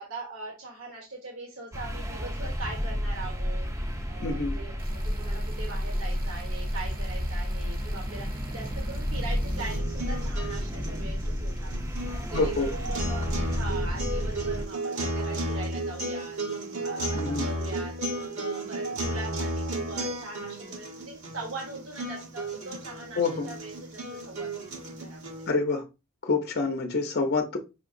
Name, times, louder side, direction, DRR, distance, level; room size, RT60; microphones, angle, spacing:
voice 1, 0.0-3.7 4.1-4.8 5.2-11.7 12.3-16.4 16.7-25.5, right 2 dB, 65° right, 1.0 m, -41 dB
sound 1, 1.7-14.7, equal, 15° right, 0.4 m, -31 dB
voice 2, 4.2-4.6 12.3-12.7 17.1-17.5 23.2-23.5 25.5-25.8 26.2-27.6, left 4 dB, 50° left, 0.5 m, -27 dB
sound 2, 4.8-9.8, right 1 dB, 40° right, 0.8 m, -42 dB
sound 3, 9.5-25.5, right 1 dB, 85° right, 1.2 m, -34 dB
5.5 x 2.8 x 2.5 m
head